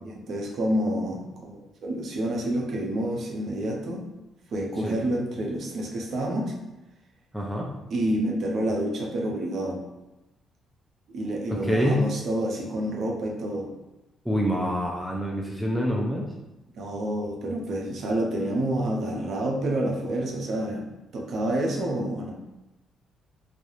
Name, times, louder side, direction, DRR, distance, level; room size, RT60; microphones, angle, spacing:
voice 1, 0.0-4.0 4.5-6.5 7.9-9.8 11.1-13.7 16.7-20.9 21.1-22.3, right 1 dB, 60° right, 0 dB, 0.5 m, -28 dB
voice 2, 7.3-7.7 11.5-12.0 14.2-16.3, equal, ahead, -3 dB, 0.4 m, -26 dB
2.3 x 2.0 x 2.9 m, 0.98 s
cardioid pair, 90°, 0 cm